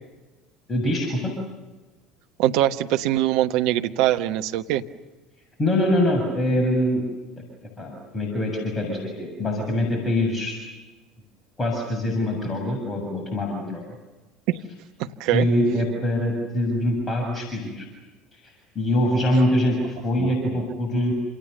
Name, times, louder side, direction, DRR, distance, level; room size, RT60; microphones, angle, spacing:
voice 1, 0.7-1.3 5.6-7.1 7.8-10.5 11.6-13.8 15.3-17.9 18.3-21.1, left 1 dB, 25° left, 2 dB, 7.2 m, -24 dB
voice 2, 2.4-4.8 14.5-14.6 15.0-15.5 20.2-20.6, right 13 dB, 55° right, 8 dB, 1.2 m, -23 dB
28.0 x 28.0 x 6.8 m, 1.2 s
figure-of-eight pair, 65°, 0 cm